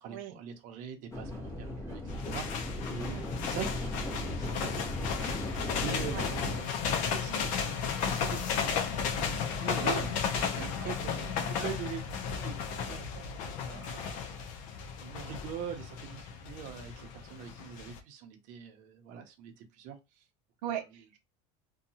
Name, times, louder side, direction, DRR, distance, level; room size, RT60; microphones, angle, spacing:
voice 1, 0.0-8.8 9.2-10.2 10.5-13.3 13.6-14.4 15.0-20.0, right 8 dB, 50° right, 0.7 m, -43 dB
sound 1, 1.1-6.6, left 1 dB, 20° left, 0.9 m, -37 dB
sound 2, 2.1-18.0, left 6 dB, 50° left, 0.5 m, -34 dB
voice 2, 9.8-10.6 20.6-21.2, right 10 dB, 90° right, 0.6 m, -38 dB
2.7 x 2.3 x 2.7 m
cardioid pair, 160°, 17 cm